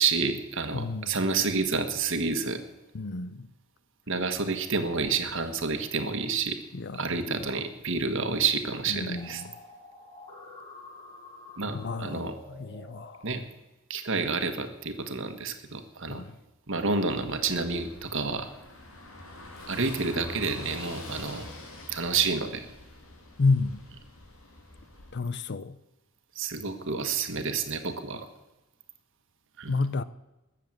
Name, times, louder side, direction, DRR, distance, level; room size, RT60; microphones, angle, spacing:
voice 1, 0.0-2.6 4.1-6.6 6.9-9.4 11.6-12.3 13.2-13.4 13.9-16.2 16.7-18.5 19.7-21.5 21.9-22.7 26.3-28.3 29.6-29.8, right 4 dB, 65° right, 1.5 m, -29 dB
voice 2, 0.7-1.2 2.9-3.5 6.7-7.5 8.9-9.5 11.7-13.2 16.1-16.4 23.4-23.8 25.1-25.8 29.7-30.0, left 3 dB, 55° left, 0.7 m, -30 dB
sound 1, 9.2-13.1, left 2 dB, 20° left, 5.4 m, -48 dB
Car passing by / Engine, 17.2-25.1, left 2 dB, 85° left, 3.0 m, -45 dB
20.0 x 7.5 x 7.8 m
head